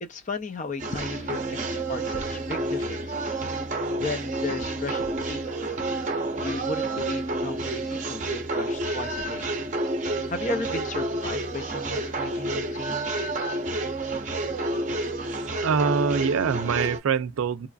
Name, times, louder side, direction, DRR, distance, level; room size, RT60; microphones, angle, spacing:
voice 1, 0.0-3.3 4.0-5.4 6.4-9.5 10.3-13.0, left 3 dB, 35° left, 0.4 m, -35 dB
sound 1, 0.8-17.0, right 2 dB, 35° right, 0.6 m, -29 dB
voice 2, 15.6-17.7, right 6 dB, 85° right, 0.4 m, -24 dB
2.9 x 2.5 x 2.3 m
head